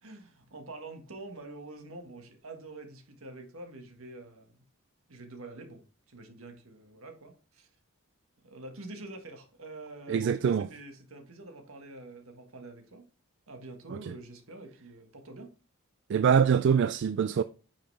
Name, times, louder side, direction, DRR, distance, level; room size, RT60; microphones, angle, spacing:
voice 1, 0.0-4.6 5.1-7.7 8.4-13.1 13.5-15.5, right 2 dB, 75° right, 1.6 m, -46 dB
voice 2, 10.1-10.7 16.1-17.4, right 7 dB, 55° right, 0.3 m, -24 dB
8.8 x 5.9 x 3.3 m
head